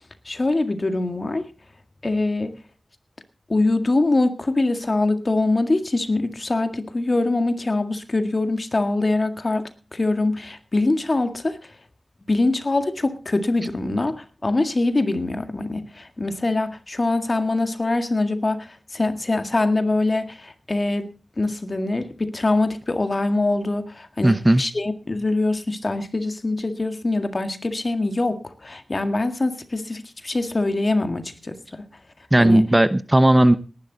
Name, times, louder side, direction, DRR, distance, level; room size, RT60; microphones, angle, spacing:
voice 1, 0.3-1.5 2.0-2.6 3.5-11.6 12.3-21.1 21.4-31.8 32.4-32.7, left 2 dB, 45° left, 8 dB, 1.8 m, -23 dB
voice 2, 24.2-24.6 32.3-33.6, right 1 dB, 20° right, 14 dB, 0.8 m, -15 dB
19.0 x 11.0 x 4.0 m, 0.33 s
cardioid pair, 50°, 0 cm